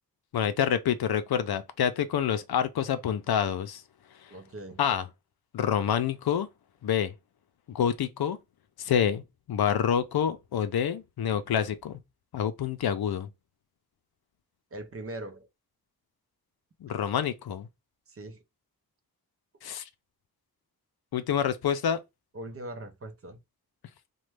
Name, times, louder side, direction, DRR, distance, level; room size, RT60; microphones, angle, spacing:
voice 1, 0.3-3.8 4.8-5.0 5.5-6.5 6.8-7.1 7.7-8.4 8.8-9.2 9.5-12.0 12.3-13.3 16.8-17.7 19.6-19.8 21.1-22.0, left 8 dB, 80° left, 0.5 m, -27 dB
voice 2, 4.3-4.8 14.7-15.5 18.1-18.4 22.3-23.4, right 1 dB, 40° right, 0.6 m, -40 dB
3.0 x 2.2 x 3.2 m
wide cardioid pair, 125°, 37 cm